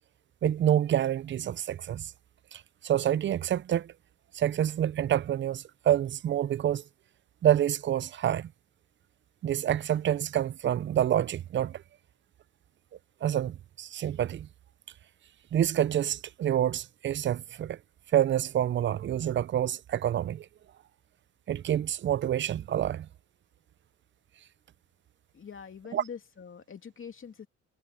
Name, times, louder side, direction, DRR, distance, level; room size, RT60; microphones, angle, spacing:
voice 1, 0.4-2.1 2.5-3.9 4.3-6.8 7.4-8.5 9.4-11.8 13.2-14.5 15.5-17.8 18.1-20.5 21.5-23.1 25.9-26.0, right 11 dB, 40° right, 0.4 m, -27 dB
voice 2, 25.3-27.5, left 7 dB, 40° left, 2.8 m, -44 dB
cardioid pair, 95°, 31 cm